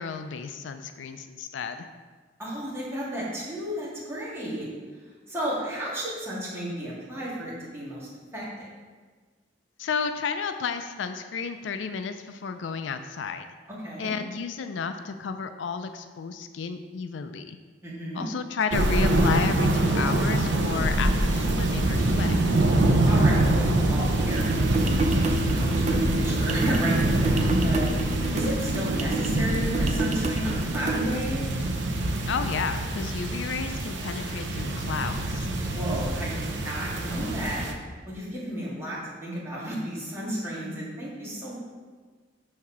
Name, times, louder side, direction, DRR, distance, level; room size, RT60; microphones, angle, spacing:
voice 1, 0.0-1.9 9.8-13.5 14.0-17.6 18.1-22.4 32.3-35.5, left 5 dB, 75° left, 8 dB, 0.4 m, -32 dB
voice 2, 2.4-4.7 5.3-8.7 13.8-14.2 17.8-18.3 23.1-31.4 35.6-37.7 38.1-41.5, equal, 15° right, -8 dB, 1.9 m, -33 dB
sound 1, 18.7-37.7, right 1 dB, 70° right, 0.7 m, -25 dB
sound 2, 24.3-31.2, right 2 dB, 35° right, 0.4 m, -30 dB
6.6 x 3.6 x 5.7 m, 1.4 s
head